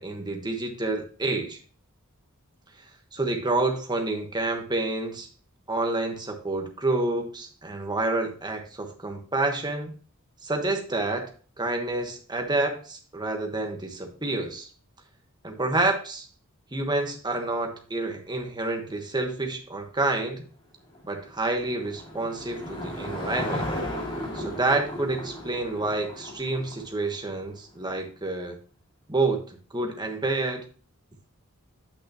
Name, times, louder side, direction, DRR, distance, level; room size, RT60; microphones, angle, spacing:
voice 1, 0.0-1.6 3.1-5.3 5.7-9.9 10.4-11.3 11.6-14.7 15.4-16.3 16.7-20.4 21.0-23.7 24.3-28.6 29.1-30.6, right 2 dB, 20° right, 4 dB, 1.2 m, -28 dB
Car passing by / Engine, 20.9-27.4, left 1 dB, 25° left, 2.2 m, -35 dB
8.5 x 6.0 x 2.8 m, 0.40 s
head